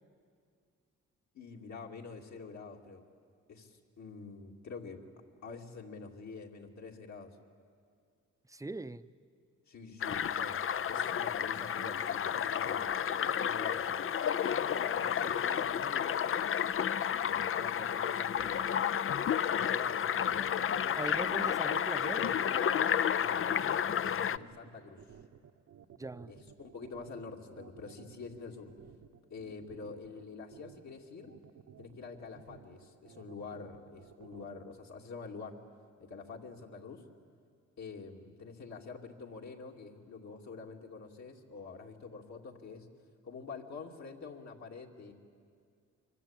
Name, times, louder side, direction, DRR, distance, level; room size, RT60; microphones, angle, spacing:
voice 1, 1.3-3.0 3.5-5.0 5.4-7.3 9.7-10.6 10.9-12.9 13.2-13.8 14.5-16.4 17.2-18.7 19.4-21.0 23.1-25.0 26.3-28.7 29.3-31.3 31.8-35.5 36.1-37.0 37.8-42.9 43.2-45.1, left 4 dB, 60° left, 0 dB, 2.8 m, -46 dB
voice 2, 8.5-9.1 21.0-22.4 26.0-26.3, right 2 dB, 10° right, 13 dB, 0.8 m, -40 dB
sound 1, 10.0-24.4, left 8 dB, 45° left, 0.6 m, -31 dB
sound 2, 19.9-34.6, right 8 dB, 65° right, 1.3 m, -55 dB
25.0 x 23.5 x 9.0 m, 2.2 s
supercardioid pair, 65°, 31 cm